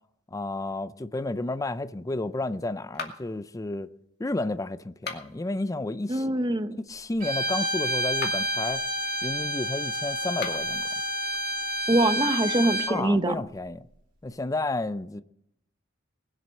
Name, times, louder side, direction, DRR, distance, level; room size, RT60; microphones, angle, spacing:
voice 1, 0.3-3.9 4.2-6.3 6.9-8.8 9.2-10.9 12.9-13.8 14.2-15.2, left 2 dB, 15° left, 0.4 m, -31 dB
sound 1, 2.9-3.4 4.9-5.5 8.1-8.6 10.3-10.8, left 5 dB, 50° left, 2.4 m, -38 dB
voice 2, 6.1-6.8 11.9-13.4, right 1 dB, 20° right, 0.7 m, -24 dB
Bowed string instrument, 7.2-13.0, equal, 40° right, 2.1 m, -29 dB
20.5 x 7.6 x 6.4 m
head